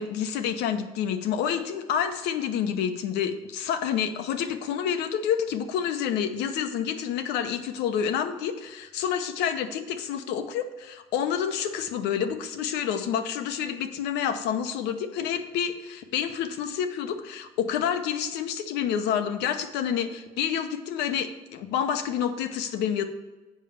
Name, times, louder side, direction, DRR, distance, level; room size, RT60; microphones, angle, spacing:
voice 1, 0.0-23.0, left 8 dB, 90° left, 8 dB, 0.9 m, -28 dB
7.2 x 5.3 x 7.0 m, 1.2 s
cardioid pair, 110°, 17 cm